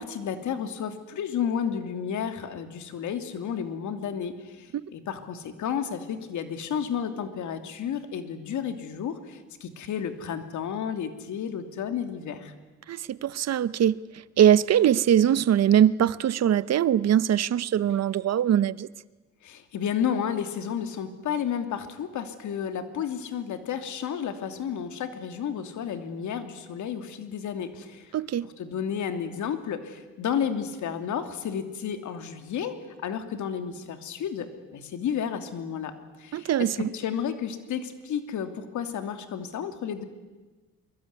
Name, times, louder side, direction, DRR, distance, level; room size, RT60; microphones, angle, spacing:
voice 1, 0.0-12.5 19.4-28.1 28.6-32.8 33.0-34.5 34.7-35.9 36.2-40.0, left 8 dB, 75° left, 3.0 m, -32 dB
voice 2, 12.9-14.0 14.4-18.9 28.1-28.5 36.3-36.8, right 10 dB, 60° right, 0.9 m, -22 dB
25.0 x 23.0 x 9.7 m
cardioid pair, 90°, 30 cm